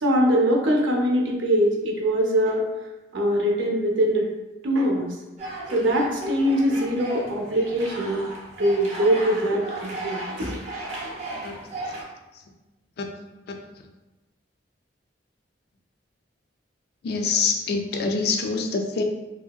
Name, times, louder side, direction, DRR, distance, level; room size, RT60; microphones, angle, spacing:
voice 1, 0.0-2.6 3.1-4.3 4.6-5.1 5.7-8.3 8.6-10.5, equal, 80° right, 0 dB, 0.6 m, -22 dB
sound 1, 5.4-12.0, right 1 dB, 40° right, 0.5 m, -35 dB
voice 2, 17.0-19.0, left 4 dB, 60° left, 3 dB, 0.3 m, -25 dB
2.8 x 2.6 x 2.3 m, 1.1 s
head